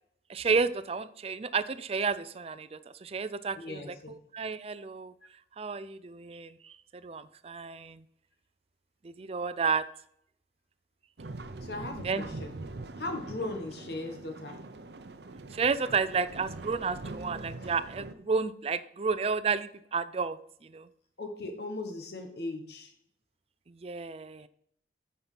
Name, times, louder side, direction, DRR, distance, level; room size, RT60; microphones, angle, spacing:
voice 1, 0.3-5.1 5.6-6.8 7.0-8.0 9.0-9.9 12.0-12.2 15.5-20.9 23.7-24.5, right 5 dB, 35° right, 14 dB, 0.4 m, -31 dB
voice 2, 3.5-4.2 5.2-5.3 11.6-12.5 13.0-14.6 17.6-17.8 21.2-22.9, left 2 dB, 65° left, 4 dB, 1.3 m, -38 dB
sound 1, 11.2-18.1, right 2 dB, 65° right, 0.7 m, -43 dB
8.7 x 4.4 x 5.8 m, 0.69 s
head